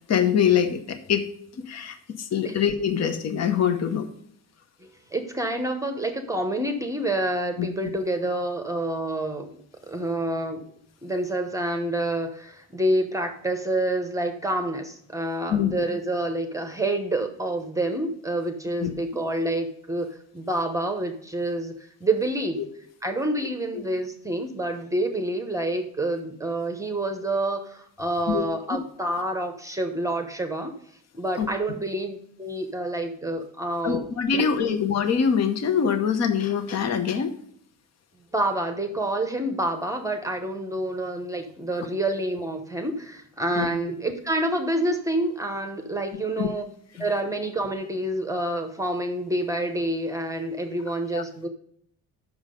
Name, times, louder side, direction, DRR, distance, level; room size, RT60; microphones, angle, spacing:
voice 1, 0.1-1.3 1.5-4.1 7.6-7.7 15.5-15.7 18.8-18.9 23.7-23.8 28.3-28.4 31.4-31.5 33.8-37.3 43.6-43.7 46.4-46.5 51.1-51.2, left 7 dB, 50° left, 9 dB, 0.9 m, -24 dB
voice 2, 4.8-9.5 9.8-10.6 11.0-20.1 20.3-22.6 23.0-30.7 31.1-34.1 34.3-34.8 38.3-46.7 47.0-51.5, right 1 dB, 10° right, 5 dB, 0.8 m, -28 dB
7.3 x 6.2 x 5.0 m, 0.65 s
cardioid pair, 135°, 35 cm